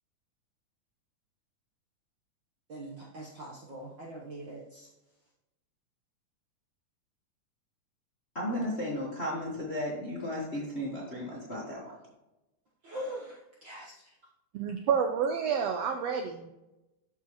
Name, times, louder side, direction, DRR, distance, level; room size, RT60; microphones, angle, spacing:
voice 1, 2.7-4.9 12.8-14.2, right 1 dB, 65° right, -4 dB, 1.1 m, -42 dB
voice 2, 8.3-11.9, left 1 dB, 40° left, -5 dB, 0.9 m, -34 dB
voice 3, 14.5-16.5, right 7 dB, 90° right, 5 dB, 1.4 m, -29 dB
12.5 x 4.6 x 3.0 m, 0.96 s
omnidirectional pair, 3.5 m